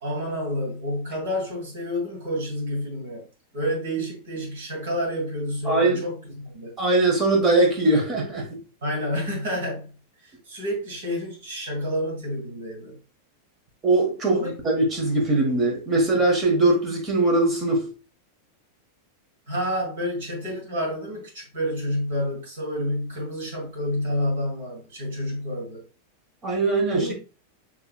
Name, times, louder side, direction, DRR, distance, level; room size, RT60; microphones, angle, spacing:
voice 1, 0.0-3.2 3.5-6.8 8.8-10.0 10.2-13.0 14.3-14.5 19.5-25.8 26.9-27.1, equal, 55° right, 2.3 m, -29 dB
voice 2, 5.6-6.0 6.8-8.6 13.8-17.9 26.4-27.1, right 2 dB, 25° right, 1.3 m, -21 dB
6.6 x 3.0 x 2.3 m
figure-of-eight pair, 90°, 0 cm